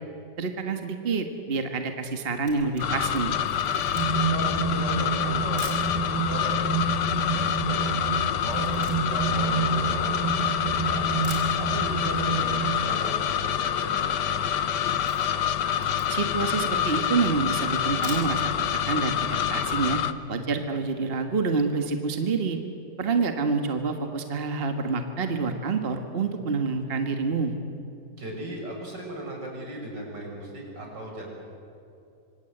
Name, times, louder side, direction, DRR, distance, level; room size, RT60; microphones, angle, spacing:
voice 1, 0.4-3.4 16.1-18.4 18.9-20.0 20.3-22.6 23.0-27.5, right 4 dB, 35° right, 6 dB, 1.7 m, -27 dB
Camera, 2.3-5.9 6.6-6.7 6.9-10.6 10.9-11.0 11.2-12.1 12.4-12.5 12.8-12.9 13.0-13.5 13.8-14.0 14.4-16.4 16.9-17.0 17.8-18.6 19.0-19.1 19.4-19.5, right 2 dB, 50° right, 5.2 m, -44 dB
sound 1, 2.8-20.1, left 9 dB, 75° left, 1.5 m, -27 dB
sound 2, 3.9-12.7, right 5 dB, 10° right, 1.7 m, -29 dB
voice 2, 4.2-8.0 8.4-11.1 11.6-14.5 28.2-31.2, right 1 dB, 80° right, -1 dB, 7.3 m, -37 dB
26.5 x 25.5 x 8.0 m, 2.8 s
omnidirectional pair, 1.9 m